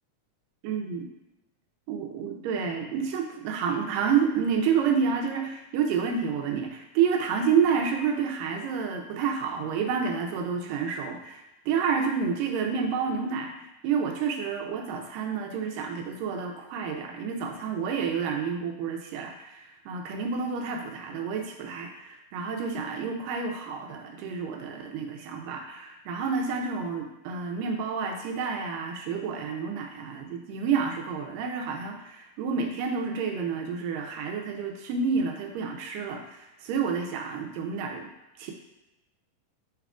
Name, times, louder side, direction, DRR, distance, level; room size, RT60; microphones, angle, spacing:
voice 1, 0.6-1.1 1.9-13.5 13.8-38.1 38.4-38.5, right 6 dB, 85° right, 3 dB, 2.3 m, -29 dB
6.3 x 3.6 x 2.4 m, 0.96 s
omnidirectional pair, 3.9 m